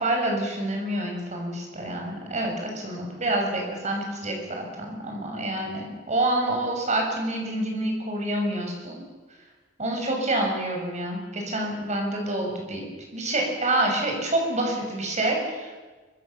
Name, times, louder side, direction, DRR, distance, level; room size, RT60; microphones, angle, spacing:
voice 1, 0.0-9.0 9.8-12.8 13.1-15.7, right 1 dB, 40° right, 1 dB, 6.8 m, -27 dB
25.0 x 24.5 x 7.1 m, 1.3 s
head